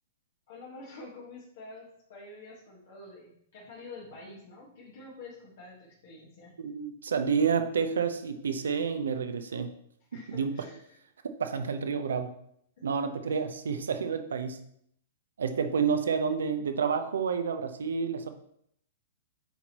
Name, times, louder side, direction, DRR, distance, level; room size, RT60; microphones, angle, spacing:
voice 1, 0.5-6.6 10.1-11.0 12.8-12.9 13.2-13.4, left 2 dB, 60° left, -4 dB, 1.5 m, -48 dB
voice 2, 6.6-9.7 10.3-10.6 11.2-12.4 12.8-14.6 15.4-18.3, right 6 dB, 80° right, 8 dB, 0.7 m, -29 dB
8.0 x 4.4 x 2.9 m, 0.69 s
hypercardioid pair, 115°, 0 cm